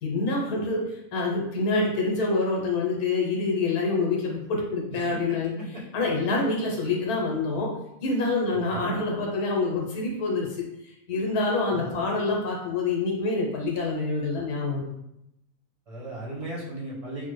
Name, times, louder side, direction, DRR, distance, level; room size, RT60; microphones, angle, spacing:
voice 1, 0.0-5.5 5.9-7.7 8.0-14.9, left 3 dB, 75° left, -1 dB, 1.3 m, -26 dB
voice 2, 11.7-12.1 15.9-17.3, right 1 dB, 40° right, -5 dB, 0.5 m, -36 dB
3.3 x 2.1 x 3.1 m, 0.84 s
omnidirectional pair, 1.6 m